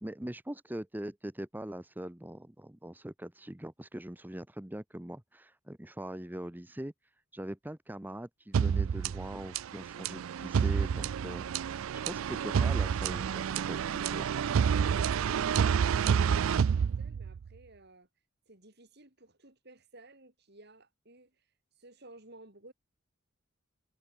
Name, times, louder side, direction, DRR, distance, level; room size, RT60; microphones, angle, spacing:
voice 1, 0.0-6.9 7.3-11.5 11.9-14.3, right 1 dB, 10° right, 0.9 m, -42 dB
sound 1, 8.5-17.5, right 7 dB, 85° right, 0.4 m, -29 dB
voice 2, 14.6-18.1 18.5-21.5 21.8-22.7, right 2 dB, 55° right, 7.2 m, -55 dB
head